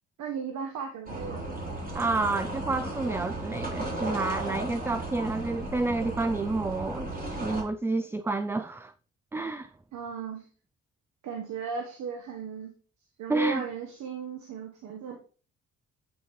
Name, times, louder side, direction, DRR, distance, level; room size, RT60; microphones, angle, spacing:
voice 1, 0.2-1.6 9.9-10.5 11.2-12.7 13.2-15.2, right 6 dB, 70° right, 1.3 m, -36 dB
sound 1, 1.1-7.6, right 1 dB, 30° right, 3.6 m, -35 dB
voice 2, 1.9-7.1 7.4-8.9 9.3-9.7 13.3-13.6, right 3 dB, 10° right, 0.3 m, -29 dB
8.8 x 6.5 x 3.2 m
cardioid pair, 90°, 30 cm